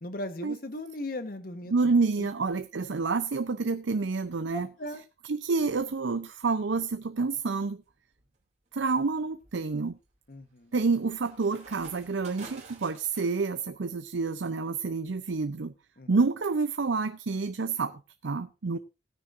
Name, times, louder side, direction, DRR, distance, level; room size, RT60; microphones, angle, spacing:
voice 1, 0.0-1.9 2.2-2.3 4.5-5.0 10.3-10.7 16.0-16.1 18.7-18.8, left 1 dB, 50° left, 1.2 m, -38 dB
voice 2, 1.7-4.7 5.3-7.8 8.7-10.0 10.7-15.7 16.1-18.8, right 4 dB, 80° right, 0.6 m, -28 dB
sound 1, 7.9-8.2 8.8-13.4, right 4 dB, 35° right, 2.7 m, -50 dB
18.5 x 9.6 x 2.6 m
head